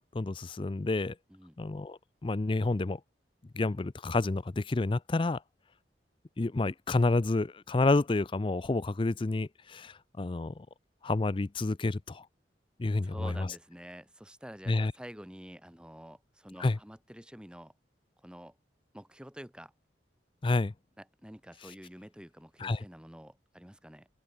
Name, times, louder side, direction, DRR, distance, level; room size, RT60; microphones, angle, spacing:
voice 1, 0.1-1.1 1.6-3.0 3.5-5.4 6.4-10.5 11.0-12.2 12.8-13.3 14.7-14.9 16.6-16.8 20.4-20.7 22.6-22.8, left 2 dB, 30° left, 0.4 m, -29 dB
voice 2, 0.9-1.6 13.0-17.7 18.2-18.6 18.9-19.7 21.0-24.1, equal, 5° right, 1.7 m, -48 dB
open air
head